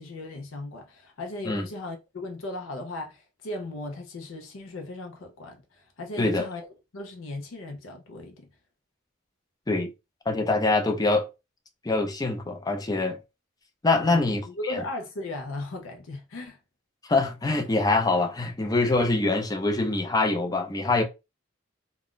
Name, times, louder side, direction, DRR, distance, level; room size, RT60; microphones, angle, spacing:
voice 1, 0.0-6.7 6.9-8.5 14.0-16.6, left 2 dB, 85° left, 0.6 m, -37 dB
voice 2, 6.2-6.5 9.7-9.9 10.3-11.3 11.8-13.2 13.8-14.4 14.7-14.8 17.1-21.0, left 2 dB, 20° left, 0.5 m, -24 dB
2.4 x 2.2 x 3.6 m
head